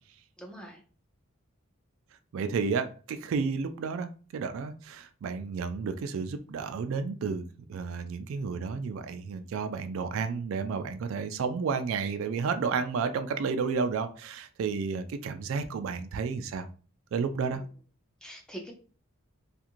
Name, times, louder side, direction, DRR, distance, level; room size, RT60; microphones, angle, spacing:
voice 1, 0.4-0.8 17.5-17.7 18.2-18.7, right 1 dB, 5° left, 1 dB, 0.4 m, -43 dB
voice 2, 2.3-7.4 7.7-16.7 17.1-17.6, right 5 dB, 70° right, 9 dB, 0.3 m, -31 dB
2.5 x 2.4 x 2.9 m, 0.38 s
head